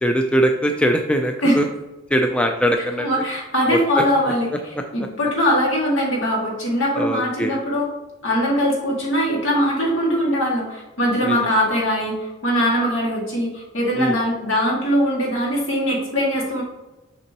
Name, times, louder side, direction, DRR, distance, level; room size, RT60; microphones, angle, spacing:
voice 1, 0.0-1.7 2.1-3.1 3.7-4.3 7.0-7.6 11.2-11.4 14.0-14.2, equal, 5° left, 4 dB, 0.3 m, -21 dB
voice 2, 3.0-7.9 8.2-16.6, equal, 70° left, -2 dB, 2.0 m, -21 dB
6.7 x 5.3 x 2.9 m, 1.1 s
head